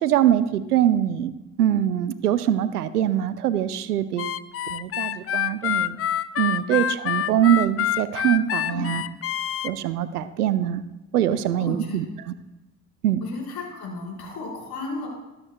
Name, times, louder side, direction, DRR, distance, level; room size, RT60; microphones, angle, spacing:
voice 1, 0.0-1.3 1.6-4.3 4.7-6.0 6.4-9.0 9.6-10.8 11.1-12.1 13.0-13.2, right 11 dB, 90° right, 15 dB, 0.6 m, -23 dB
Harmonica, 4.2-9.7, left 11 dB, 30° left, 0.5 m, -26 dB
voice 2, 11.6-12.0 13.2-15.1, left 3 dB, 60° left, -3 dB, 4.7 m, -34 dB
23.0 x 9.0 x 2.2 m, 1.0 s
figure-of-eight pair, 45°, 44 cm